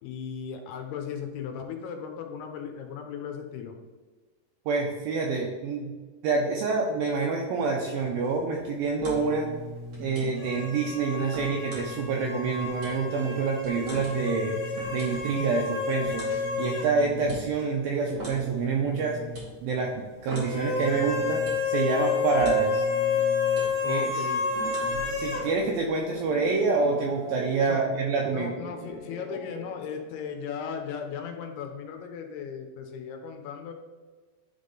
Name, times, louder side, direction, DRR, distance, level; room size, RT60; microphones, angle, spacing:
voice 1, 0.0-3.8 23.8-24.5 27.7-27.9 28.3-33.7, left 7 dB, 80° left, 5 dB, 2.6 m, -37 dB
voice 2, 4.7-5.9 6.2-9.5 10.0-14.5 14.9-16.3 16.6-19.2 19.6-19.9 20.2-22.8 23.9-24.3 25.2-28.5, right 4 dB, 80° right, 0 dB, 2.1 m, -27 dB
sound 1, 8.1-25.0, left 1 dB, 35° right, 2.2 m, -41 dB
sound 2, 10.4-16.9 17.2-17.3 20.4-25.5, left 4 dB, 55° left, 1.8 m, -29 dB
sound 3, 24.9-30.5, right 1 dB, 50° right, 3.2 m, -42 dB
10.5 x 3.6 x 3.8 m, 1.4 s
omnidirectional pair, 4.9 m